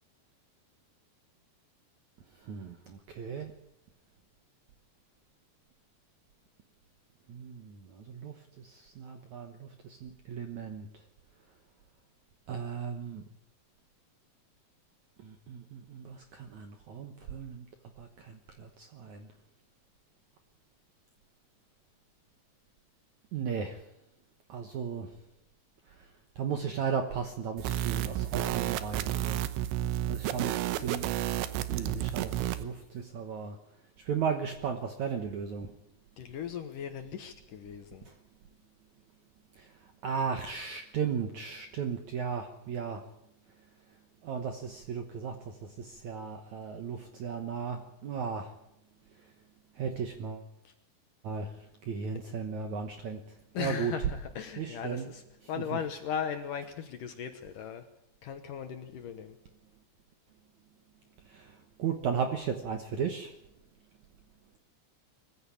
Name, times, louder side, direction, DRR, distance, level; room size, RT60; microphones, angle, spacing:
voice 1, 2.4-3.5 7.3-10.9 12.5-13.2 15.2-17.7 18.0-19.3 23.3-23.8 24.5-25.1 26.4-29.4 30.0-31.1 31.7-33.6 34.0-35.7 38.1-38.2 39.6-39.7 40.0-43.0 44.2-48.5 49.8-50.5 51.2-51.5 51.8-53.2 53.6-53.9 54.6-55.1 55.7-55.8 61.3-63.3, right 6 dB, 65° right, 6 dB, 1.9 m, -36 dB
sound 1, 27.6-32.6, right 13 dB, 90° right, 3.3 m, -31 dB
voice 2, 36.2-38.1 50.6-50.7 53.5-55.2 55.5-57.8 58.2-59.4, left 8 dB, 65° left, 7 dB, 2.3 m, -37 dB
22.0 x 15.0 x 8.6 m, 0.83 s
omnidirectional pair, 4.9 m